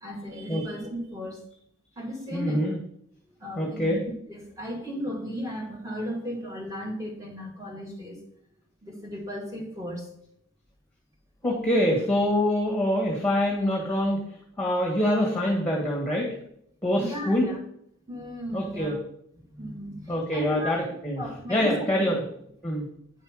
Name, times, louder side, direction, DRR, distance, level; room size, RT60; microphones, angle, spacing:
voice 1, 0.0-1.4 2.0-2.6 3.4-4.0 4.3-8.2 8.8-10.1 11.7-12.0 16.9-17.6 18.1-18.9 19.4-20.7 21.2-21.9, equal, 15° right, 0 dB, 1.7 m, -35 dB
voice 2, 2.3-2.8 3.6-4.0 11.4-14.2 14.6-16.3 16.8-17.5 18.5-18.9 20.1-21.2 21.5-22.2 22.6-22.9, left 1 dB, 5° left, -2 dB, 1.5 m, -25 dB
9.2 x 5.4 x 4.8 m, 0.71 s
head